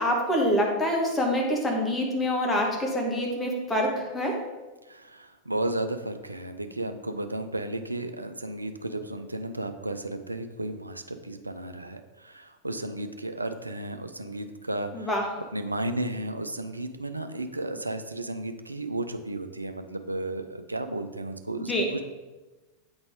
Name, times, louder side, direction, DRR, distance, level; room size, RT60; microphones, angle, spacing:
voice 1, 0.0-4.3 14.9-15.2 21.6-21.8, left 1 dB, 10° left, -1 dB, 1.4 m, -26 dB
voice 2, 4.9-15.2 15.5-22.0, right 2 dB, 85° right, 8 dB, 0.4 m, -33 dB
8.6 x 4.0 x 3.6 m, 1.2 s
figure-of-eight pair, 90°, 0 cm